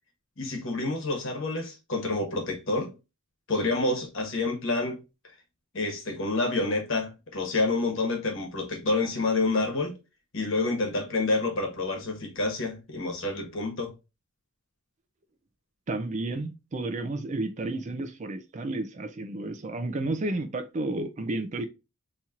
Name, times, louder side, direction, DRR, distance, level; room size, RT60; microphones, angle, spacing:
voice 1, 0.4-2.9 3.5-5.0 5.7-9.9 10.3-13.9, left 2 dB, 60° left, 1.2 m, -28 dB
voice 2, 15.9-21.7, right 2 dB, 35° right, 0.4 m, -32 dB
4.3 x 2.9 x 2.3 m
head